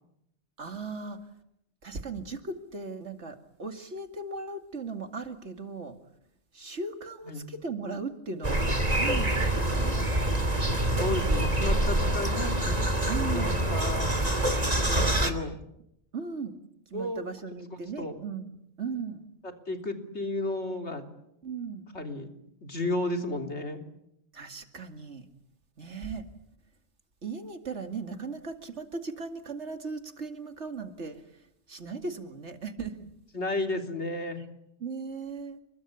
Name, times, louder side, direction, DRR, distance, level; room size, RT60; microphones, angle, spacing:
voice 1, 0.6-1.2 1.8-6.0 6.5-10.1 13.1-13.6 16.1-16.5 16.9-18.5 18.8-19.2 21.4-21.9 24.3-25.3 25.8-26.2 27.2-31.2 31.7-33.1 34.4-34.5 34.8-35.6, right 4 dB, 85° right, 7 dB, 2.6 m, -37 dB
sound 1, 8.4-15.3, right 1 dB, 35° right, 2.9 m, -26 dB
voice 2, 10.8-12.8 13.3-14.1 14.9-15.6 16.9-17.2 18.0-18.1 19.4-21.0 21.9-22.3 22.6-23.8 33.3-34.4, left 2 dB, 75° left, 5 dB, 3.6 m, -32 dB
30.0 x 21.5 x 8.5 m, 0.79 s
omnidirectional pair, 1.2 m